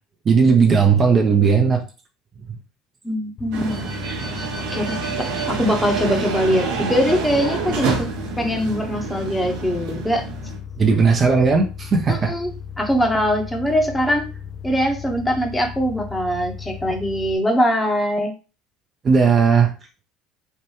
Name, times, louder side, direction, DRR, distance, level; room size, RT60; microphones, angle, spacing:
voice 1, 0.2-1.8 10.8-12.3 19.0-19.7, right 5 dB, 35° right, 3 dB, 0.7 m, -16 dB
voice 2, 3.0-3.7 4.7-8.1 8.4-10.2 12.1-12.5 12.8-14.3 14.6-18.3, equal, 10° left, 3 dB, 1.1 m, -22 dB
sound 1, 3.4-17.4, left 7 dB, 45° left, 0.6 m, -36 dB
sound 2, 3.5-10.6, right 5 dB, 65° right, 0.9 m, -28 dB
3.3 x 2.5 x 3.2 m, 0.33 s
hypercardioid pair, 65°, 0 cm